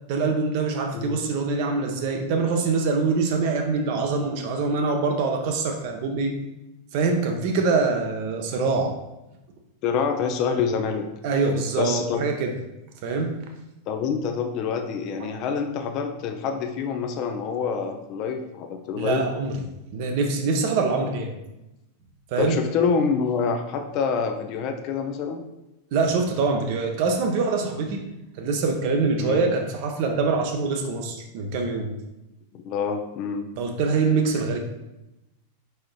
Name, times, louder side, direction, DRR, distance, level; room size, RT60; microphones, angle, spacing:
voice 1, 0.1-6.3 6.9-9.0 11.2-12.5 13.0-13.4 15.2-15.3 19.0-19.6 19.9-21.3 22.3-22.6 25.9-32.0 33.6-34.6, right 4 dB, 45° right, 3 dB, 0.7 m, -24 dB
voice 2, 9.8-11.1 11.8-12.2 13.9-19.2 22.4-25.4 29.2-29.4 32.5-33.5, left 6 dB, 40° left, 5 dB, 0.5 m, -26 dB
4.9 x 4.3 x 2.3 m, 0.93 s
figure-of-eight pair, 90°, 0 cm